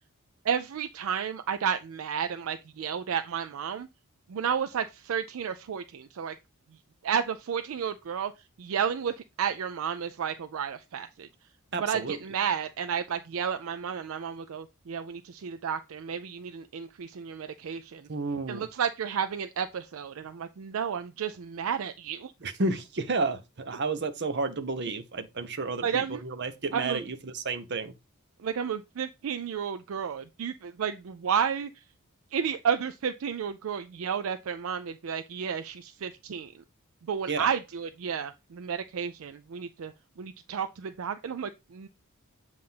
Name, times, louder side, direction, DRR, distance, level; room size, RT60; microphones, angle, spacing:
voice 1, 0.4-3.9 4.3-6.4 7.0-8.3 8.6-11.3 11.8-18.1 18.5-22.3 25.8-26.2 26.7-27.0 28.4-31.7 32.3-36.6 37.1-39.9 40.2-41.9, right 7 dB, 70° right, 0.4 m, -32 dB
voice 2, 11.7-12.2 18.1-18.7 22.4-27.9 37.3-37.5, right 3 dB, 50° right, 0.8 m, -31 dB
7.6 x 2.5 x 5.5 m
head